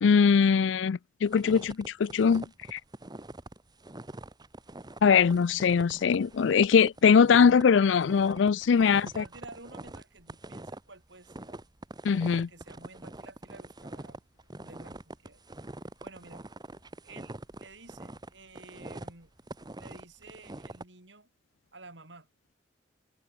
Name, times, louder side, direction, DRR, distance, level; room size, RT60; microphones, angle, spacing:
voice 1, 0.0-2.4 2.7-2.8 5.0-9.2 12.0-12.5, left 6 dB, 80° left, 0.4 m, -22 dB
sound 1, 1.2-20.8, right 2 dB, 25° right, 1.2 m, -44 dB
voice 2, 8.9-11.6 12.3-14.2 14.6-15.4 16.0-16.5 17.0-19.3 19.8-21.3 21.7-22.3, right 3 dB, 70° right, 7.3 m, -51 dB
head